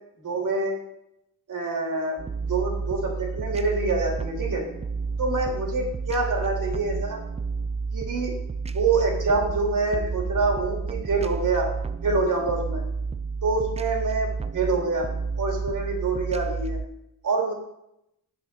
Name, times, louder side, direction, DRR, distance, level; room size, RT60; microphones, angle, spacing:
voice 1, 0.2-0.8 1.5-2.2 2.5-4.6 5.2-7.2 7.9-8.3 8.7-11.7 12.0-12.8 13.4-15.1 15.4-16.8 17.2-17.5, right 3 dB, 60° right, 0 dB, 2.9 m, -26 dB
sound 1, 2.2-16.9, right 4 dB, 20° right, 0.3 m, -31 dB
7.1 x 6.7 x 5.8 m, 0.81 s
cardioid pair, 100°, 35 cm